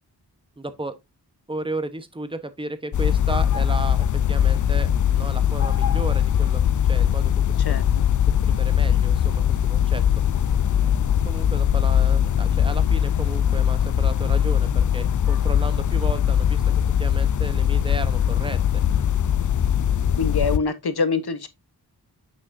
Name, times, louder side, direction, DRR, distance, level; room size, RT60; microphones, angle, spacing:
voice 1, 0.6-0.9 1.5-7.6 8.4-10.0 10.3-10.5 10.8-10.9 11.2-16.6 17.0-18.8, right 2 dB, 15° right, 1.0 m, -34 dB
sound 1, 2.9-20.6, left 9 dB, 50° left, 0.4 m, -21 dB
voice 2, 20.1-21.5, left 4 dB, 70° left, 1.1 m, -24 dB
8.5 x 6.1 x 2.6 m
wide cardioid pair, 95°, 40 cm